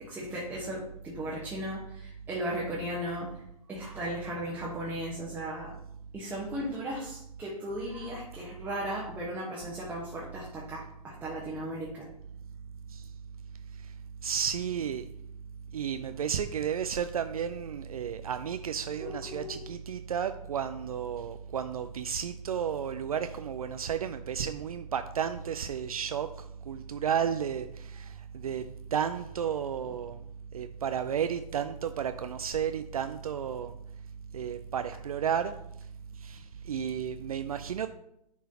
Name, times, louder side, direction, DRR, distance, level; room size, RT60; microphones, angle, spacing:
voice 1, 0.1-3.3 3.7-5.7 6.1-12.1 19.0-19.7, right 1 dB, 10° right, -5 dB, 1.1 m, -36 dB
voice 2, 14.2-15.0 15.7-30.2 30.5-33.8 34.3-35.6 36.1-37.9, right 8 dB, 65° right, 9 dB, 0.4 m, -33 dB
10.5 x 3.7 x 2.8 m, 0.77 s
figure-of-eight pair, 110°, 20 cm